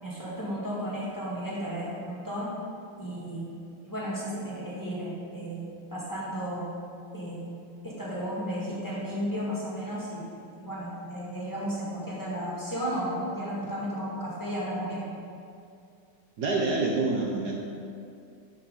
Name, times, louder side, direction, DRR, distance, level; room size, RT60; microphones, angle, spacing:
voice 1, 0.0-2.5 3.0-3.6 3.8-6.6 7.1-7.5 7.8-15.1, equal, 10° left, -8 dB, 2.0 m, -34 dB
voice 2, 16.4-17.6, right 3 dB, 65° right, -2 dB, 1.3 m, -27 dB
11.0 x 4.4 x 5.4 m, 2.5 s
omnidirectional pair, 2.0 m